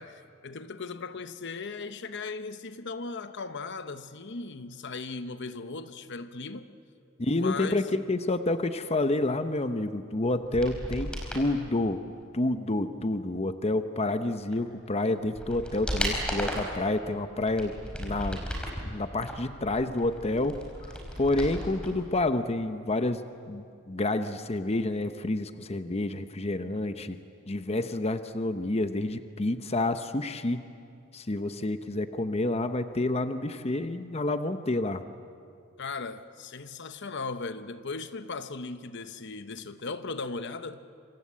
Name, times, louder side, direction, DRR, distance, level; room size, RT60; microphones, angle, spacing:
voice 1, 0.0-6.7 7.3-7.9 35.8-40.8, left 4 dB, 60° left, 0.9 m, -37 dB
voice 2, 7.2-12.0 12.3-17.7 18.0-18.4 18.8-23.2 23.5-27.2 27.5-30.6 31.1-35.0, left 2 dB, 30° left, 0.9 m, -29 dB
sound 1, 10.4-11.5 14.5-14.6 15.1-16.8 17.3-18.8 19.2-21.9 22.2-22.3, equal, 5° left, 4.9 m, -35 dB
26.5 x 26.0 x 8.6 m
head